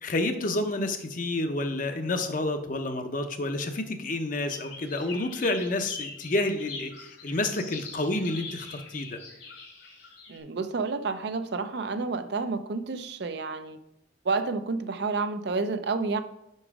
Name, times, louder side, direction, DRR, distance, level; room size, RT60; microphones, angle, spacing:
voice 1, 0.0-9.2, left 2 dB, 45° left, 7 dB, 0.7 m, -29 dB
sound 1, 4.5-10.4, left 4 dB, 80° left, 3.1 m, -42 dB
voice 2, 10.3-13.8 14.2-16.2, right 4 dB, 60° right, 10 dB, 0.5 m, -30 dB
5.9 x 5.4 x 4.8 m, 0.83 s
head